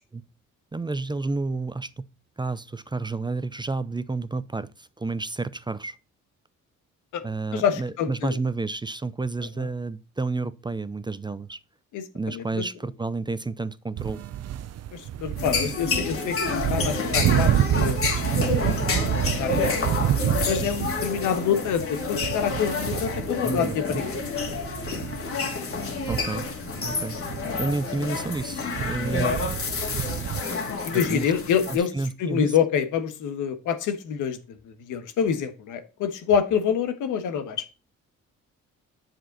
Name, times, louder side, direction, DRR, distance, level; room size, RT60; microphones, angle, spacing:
voice 1, 0.7-2.0 2.4-6.0 7.2-11.6 12.1-14.2 23.4-24.0 26.1-26.5 26.8-27.2 27.6-29.3 30.9-31.3 31.7-32.5, right 3 dB, 15° right, 0.5 m, -30 dB
voice 2, 7.5-8.4 9.6-9.7 11.9-12.7 14.9-18.2 19.0-19.8 20.4-24.2 27.4-27.5 29.1-29.4 30.8-31.9 32.2-34.4 34.7-37.6, left 7 dB, 85° left, 1.4 m, -27 dB
sound 1, 14.0-30.4, right 11 dB, 55° right, 0.7 m, -28 dB
sound 2, 15.4-31.8, left 4 dB, 45° left, 2.4 m, -29 dB
7.7 x 6.1 x 3.9 m
cardioid pair, 90°, 30 cm